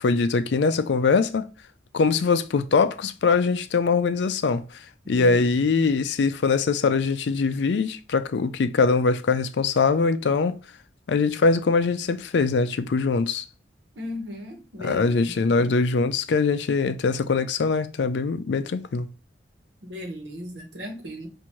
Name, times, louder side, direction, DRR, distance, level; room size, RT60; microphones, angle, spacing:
voice 1, 0.0-1.5 1.9-4.6 5.1-10.6 11.1-13.4 14.8-19.1, left 4 dB, 70° left, 0.4 m, -22 dB
voice 2, 5.0-5.9 13.9-15.7 19.8-21.3, left 1 dB, 70° right, 1.2 m, -37 dB
5.8 x 2.6 x 3.0 m
head